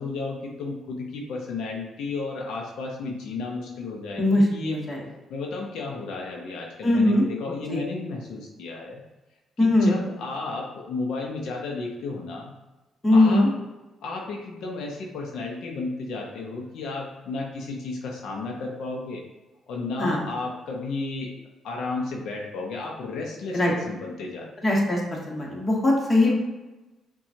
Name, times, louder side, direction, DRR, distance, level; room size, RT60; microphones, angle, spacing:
voice 1, 0.0-4.2 4.5-4.8 5.3-9.0 9.6-12.5 13.1-13.5 14.0-19.2 19.7-21.3 21.6-24.7, left 3 dB, 80° left, -1 dB, 0.6 m, -33 dB
voice 2, 4.2-5.0 6.8-7.2 7.7-7.8 9.6-10.0 13.0-13.5 20.0-20.2 23.5-23.7 24.6-25.0 25.3-26.3, left 1 dB, 25° left, -2 dB, 1.2 m, -20 dB
5.7 x 2.3 x 2.7 m, 1.1 s
cardioid pair, 90°, 0 cm